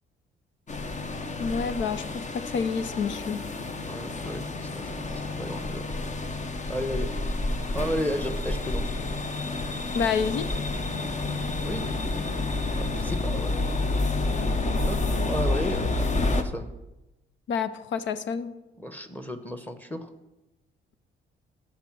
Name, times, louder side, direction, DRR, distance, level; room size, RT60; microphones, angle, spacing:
sound 1, 0.7-16.4, left 2 dB, 35° left, 1.0 m, -29 dB
voice 1, 1.4-3.4 9.9-10.5 17.5-18.5, left 6 dB, 70° left, 13 dB, 0.7 m, -28 dB
voice 2, 3.8-5.9 6.7-7.1 7.7-8.8 11.6-12.5 12.8-13.6 14.8-16.7 18.8-20.1, equal, 10° left, 8 dB, 1.1 m, -34 dB
13.0 x 5.2 x 6.1 m, 0.99 s
cardioid pair, 90°, 20 cm